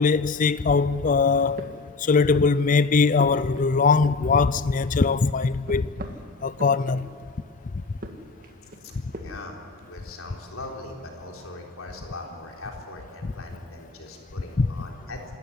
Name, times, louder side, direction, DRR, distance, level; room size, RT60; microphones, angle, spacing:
voice 1, 0.0-1.7 2.0-5.9 6.4-7.1 13.2-13.3 14.6-14.7, left 4 dB, 35° left, 0.4 m, -21 dB
sound 1, 1.2-2.6 3.0-4.5 4.8-7.4 7.8-9.6, right 1 dB, 40° right, 1.9 m, -42 dB
voice 2, 9.2-9.6 9.9-15.2, left 2 dB, 70° left, 3.9 m, -40 dB
26.5 x 14.0 x 9.9 m
head